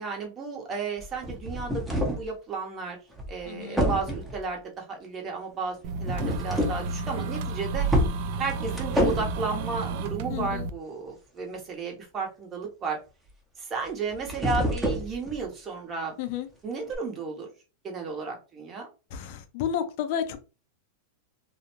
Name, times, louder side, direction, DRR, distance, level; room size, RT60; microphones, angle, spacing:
voice 1, 0.0-3.0 3.3-7.9 8.4-13.0 13.6-16.1 16.6-17.5 17.8-18.9, right 4 dB, 30° right, 1 dB, 0.8 m, -33 dB
sound 1, 1.0-2.3 3.2-3.4 3.8-4.4 6.0-6.9 7.3-7.4 7.9-9.4 13.9-15.4 16.9-17.0, equal, 5° right, 0.8 m, -28 dB
voice 2, 3.5-3.8 10.3-10.7 16.2-16.5 19.1-20.4, left 9 dB, 60° left, 9 dB, 0.5 m, -31 dB
sound 2, 5.8-10.7, right 4 dB, 60° right, 0.3 m, -31 dB
2.5 x 2.0 x 3.0 m, 0.32 s
hypercardioid pair, 120°, 0 cm